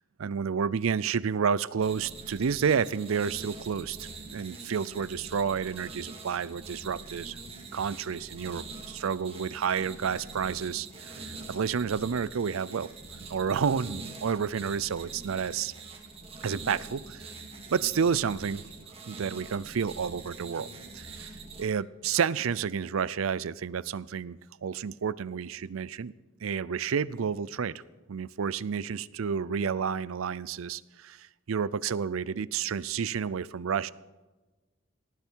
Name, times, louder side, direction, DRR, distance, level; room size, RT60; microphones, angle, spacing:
voice 1, 0.2-7.4 7.7-12.9 13.3-15.7 16.4-17.3 17.7-18.6 19.1-20.7 20.9-26.1 26.4-27.7 28.1-33.9, right 6 dB, 85° right, 19 dB, 0.5 m, -30 dB
sound 1, 1.8-21.6, right 3 dB, 30° right, 1.7 m, -44 dB
19.0 x 14.0 x 4.6 m, 1.2 s
head